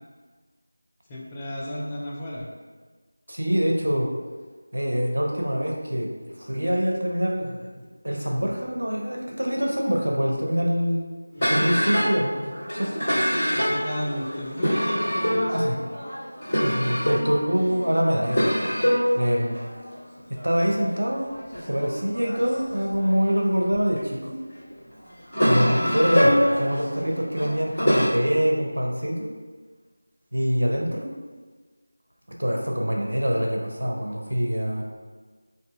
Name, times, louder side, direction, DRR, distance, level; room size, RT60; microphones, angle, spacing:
voice 1, 1.1-2.5 11.4-11.7 13.5-15.6, left 1 dB, 15° left, -6 dB, 0.3 m, -33 dB
voice 2, 3.3-4.1 4.7-6.1 6.4-11.0 11.5-13.1 15.5-15.8 16.6-18.6 19.1-19.6 20.3-21.3 21.7-24.4 25.4-29.3 30.3-31.1 32.4-34.8, equal, 80° right, 0 dB, 0.6 m, -25 dB
sound 1, 11.4-24.0 24.6-28.1, equal, 30° left, 1.4 m, -25 dB
3.7 x 2.6 x 2.4 m, 1.4 s
figure-of-eight pair, 170°, 0 cm